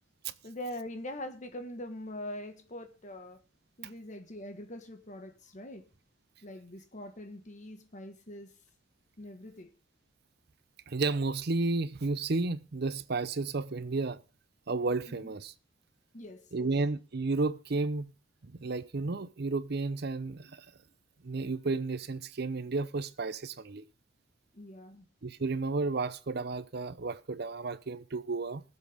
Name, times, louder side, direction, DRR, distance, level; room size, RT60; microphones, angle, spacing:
voice 1, 0.4-3.4 3.8-5.9 6.4-8.6 9.2-9.7 15.1-15.3 16.1-16.7 24.5-25.1, left 1 dB, 35° left, 1.4 m, -43 dB
voice 2, 10.9-14.2 14.7-15.5 16.5-18.1 18.4-20.6 21.2-23.9 25.2-28.6, right 3 dB, 55° right, 0.6 m, -32 dB
20.0 x 7.5 x 3.5 m
head